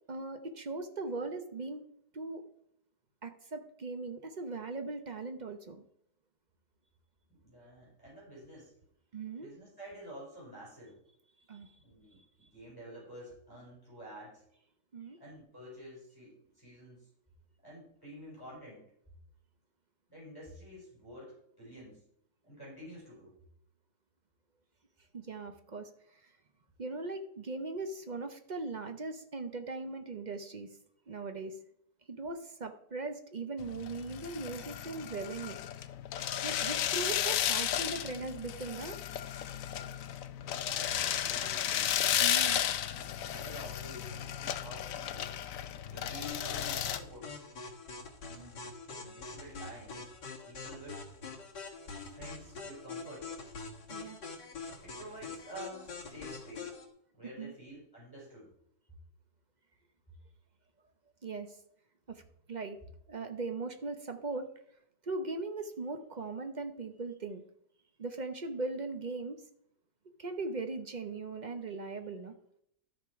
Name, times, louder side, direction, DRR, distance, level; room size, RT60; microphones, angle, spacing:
voice 1, 0.1-1.8 2.1-2.5 3.2-5.8 9.1-9.5 11.5-11.7 14.9-15.2 25.1-25.9 26.2-26.3 26.8-30.7 31.1-31.6 32.1-35.6 36.4-39.0 42.2-42.6 48.3-48.5 53.9-54.2 57.4-57.5 61.2-61.6 62.1-62.2 62.5-62.8 63.1-64.5 65.0-67.4 68.0-69.4 70.2-72.3, right 3 dB, 45° right, 7 dB, 0.6 m, -39 dB
voice 2, 7.3-8.7 9.4-11.0 11.8-14.4 15.2-17.1 17.6-18.8 20.1-22.0 22.4-23.4 40.3-41.9 42.9-45.3 45.9-47.4 48.3-48.7 49.0-50.1 50.4-51.1 51.9-53.5 54.8-56.7 57.1-58.5, right 1 dB, 10° left, -7 dB, 5.2 m, -49 dB
sound 1, 33.6-47.0, left 10 dB, 65° left, 0.9 m, -34 dB
sound 2, 46.2-56.8, left 4 dB, 80° left, 2.2 m, -44 dB
12.0 x 6.5 x 4.7 m, 0.71 s
omnidirectional pair, 1.8 m